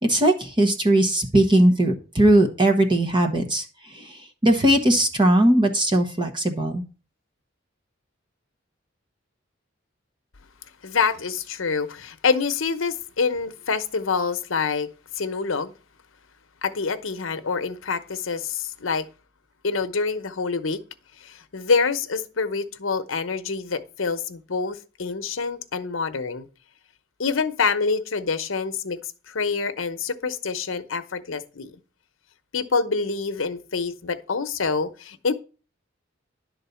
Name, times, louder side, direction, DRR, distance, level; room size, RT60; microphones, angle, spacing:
voice 1, 0.0-6.8, right 1 dB, 25° right, 1.0 m, -19 dB
voice 2, 10.8-14.9 15.1-15.7 16.6-19.1 19.6-20.8 21.2-26.5 27.2-31.8 32.5-35.3, left 5 dB, 85° left, 0.9 m, -26 dB
11.0 x 4.0 x 6.9 m
head